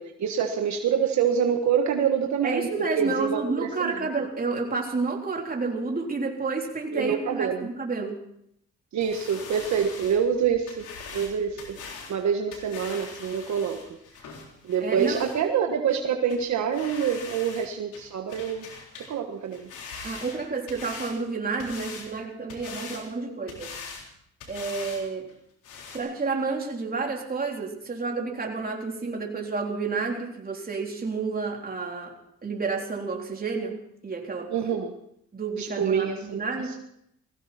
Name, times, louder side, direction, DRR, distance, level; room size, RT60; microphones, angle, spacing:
voice 1, 0.0-2.7 3.0-4.0 6.9-7.7 8.9-10.9 11.1-13.8 14.6-18.7 19.1-19.7 34.5-34.9 35.6-36.8, right 7 dB, 65° right, 4 dB, 1.6 m, -26 dB
voice 2, 2.4-8.2 14.8-15.2 20.0-23.8 24.5-25.3 25.9-32.1 32.4-34.5 35.3-36.8, right 4 dB, 30° right, 1 dB, 3.7 m, -30 dB
sound 1, 9.0-15.4 15.9-16.0 16.3-16.4 16.7-17.7 17.9-19.1 19.4-21.2 21.6-22.1 22.5-23.0 23.5-24.1 24.4-25.0 25.3-25.4 25.6-26.0, left 5 dB, 90° left, 4.0 m, -42 dB
20.0 x 16.5 x 4.4 m, 0.74 s
cardioid pair, 90°, 30 cm